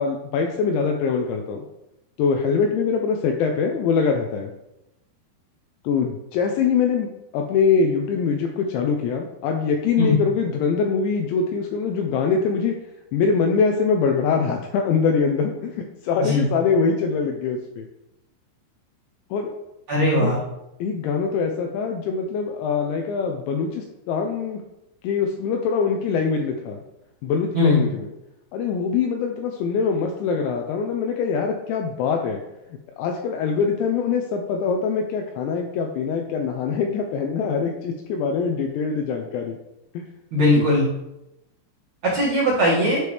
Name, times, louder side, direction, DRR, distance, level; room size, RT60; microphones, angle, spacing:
voice 1, 0.0-1.7 2.2-4.5 5.8-12.8 13.1-17.9 19.3-19.5 20.2-20.3 20.8-24.6 25.0-26.8 27.2-28.1 28.5-32.4 33.0-39.6 39.9-40.0 40.6-40.7, left 5 dB, 80° left, 3 dB, 2.6 m, -23 dB
voice 2, 19.9-20.4 27.5-27.8 40.3-40.9 42.0-43.0, left 1 dB, 50° right, -9 dB, 2.5 m, -19 dB
11.0 x 4.9 x 3.3 m, 0.92 s
omnidirectional pair, 5.7 m